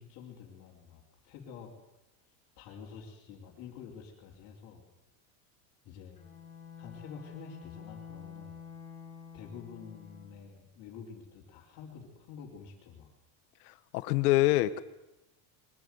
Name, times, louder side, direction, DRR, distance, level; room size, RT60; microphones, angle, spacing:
voice 1, 0.0-1.7 2.6-4.9 5.8-6.2 6.8-8.6 9.3-13.1, left 6 dB, 45° left, -6 dB, 4.6 m, -48 dB
Bowed string instrument, 6.1-10.5, left 7 dB, 15° left, 6.6 m, -48 dB
voice 2, 13.7-14.8, left 17 dB, 80° left, 13 dB, 1.4 m, -26 dB
23.0 x 14.0 x 9.6 m, 0.93 s
cardioid pair, 170°, 45 cm